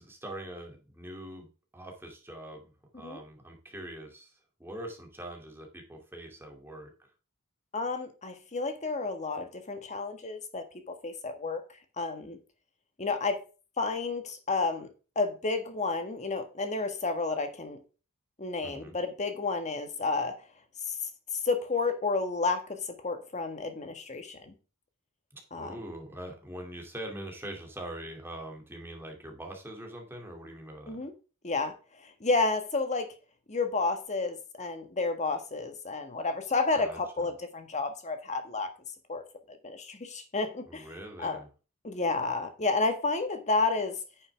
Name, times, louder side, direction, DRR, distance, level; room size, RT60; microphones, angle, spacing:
voice 1, 0.0-7.1 18.6-19.0 25.3-31.0 36.8-37.3 40.7-41.5, right 1 dB, 10° right, 2.6 m, -43 dB
voice 2, 7.7-11.6 12.0-12.4 13.0-13.4 13.8-14.9 15.1-17.8 18.4-20.3 20.9-21.1 21.4-24.5 25.5-25.8 30.9-31.1 31.4-33.1 33.5-38.7 39.1-40.9 41.2-41.4 41.8-44.0, left 3 dB, 35° left, 1.6 m, -31 dB
9.7 x 7.1 x 3.5 m
head